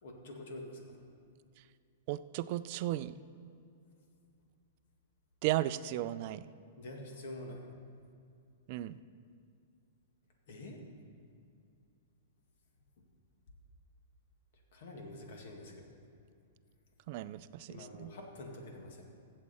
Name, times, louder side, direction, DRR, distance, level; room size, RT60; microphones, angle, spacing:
voice 1, 0.0-1.0 6.8-7.7 10.5-10.8 14.7-15.9 17.7-19.0, left 1 dB, 65° left, 1 dB, 2.0 m, -46 dB
voice 2, 2.1-3.2 5.4-6.4 8.7-9.0 17.1-18.1, right 14 dB, 45° right, 14 dB, 0.4 m, -35 dB
15.5 x 7.5 x 4.3 m, 2.5 s
hypercardioid pair, 150°, 0 cm